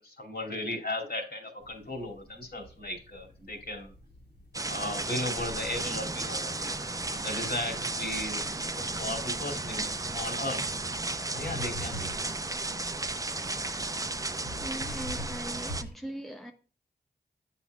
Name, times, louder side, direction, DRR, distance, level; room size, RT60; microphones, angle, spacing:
voice 1, 0.0-3.9 4.7-10.6 11.3-12.1, left 1 dB, 60° left, 2.7 m, -36 dB
sound 1, 1.6-15.9, left 1 dB, 80° left, 3.3 m, -47 dB
sound 2, 4.5-15.8, right 2 dB, 20° right, 0.6 m, -34 dB
voice 2, 14.6-16.5, right 1 dB, ahead, 1.0 m, -40 dB
8.3 x 5.8 x 2.2 m
cardioid pair, 40°, 18 cm